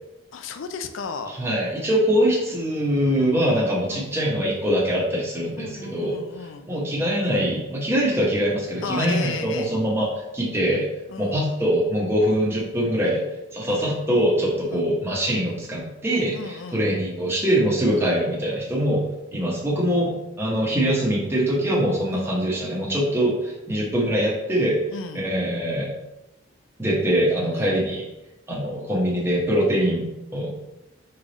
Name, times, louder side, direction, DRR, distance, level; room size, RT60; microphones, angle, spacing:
voice 1, 0.3-1.3 3.9-4.1 5.6-6.7 8.1-8.2 8.8-9.7 11.1-11.4 13.7-13.9 14.7-14.9 16.3-16.9 17.9-18.1 22.1-22.3 24.9-25.3 27.5-27.8, left 5 dB, 65° left, 7 dB, 0.4 m, -34 dB
voice 2, 1.3-6.2 6.7-10.1 10.3-10.9 11.2-13.2 13.5-19.0 19.3-24.8 25.1-25.9 26.8-28.0 28.5-30.5, equal, 10° right, -6 dB, 0.9 m, -23 dB
3.6 x 3.3 x 3.9 m, 0.92 s
head